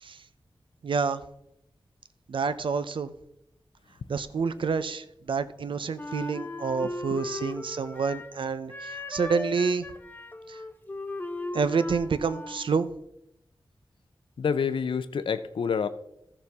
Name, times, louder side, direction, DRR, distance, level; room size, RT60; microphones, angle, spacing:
voice 1, 0.8-1.2 2.3-3.1 4.1-9.8 10.5-10.6 11.5-12.9, right 5 dB, 75° right, 0.6 m, -28 dB
Wind instrument woodwind instrument, 6.0-8.4 8.7-12.8, left 2 dB, 20° left, 0.8 m, -37 dB
voice 2, 14.4-15.9, left 6 dB, 80° left, 0.5 m, -27 dB
14.5 x 6.7 x 3.6 m
wide cardioid pair, 85°, 9 cm